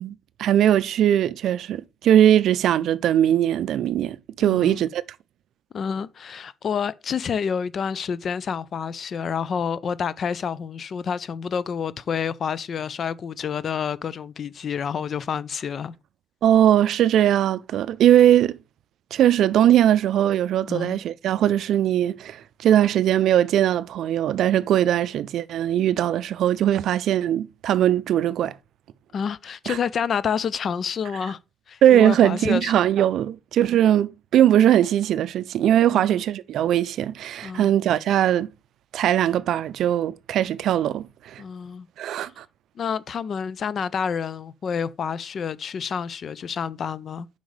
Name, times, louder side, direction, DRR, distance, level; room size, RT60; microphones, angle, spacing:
voice 1, 0.0-5.0 16.4-18.6 19.1-28.5 29.7-29.8 31.8-38.5 38.9-41.4 42.0-42.4, right 11 dB, 80° right, 0.4 m, -20 dB
voice 2, 4.4-4.8 5.7-15.9 20.7-21.0 29.1-31.4 31.7-32.7 35.9-36.2 37.4-37.8 41.4-41.9 42.2-42.3 42.8-47.3, left 7 dB, 60° left, 0.4 m, -28 dB
7.8 x 5.3 x 3.3 m
cardioid pair, 80°, 0 cm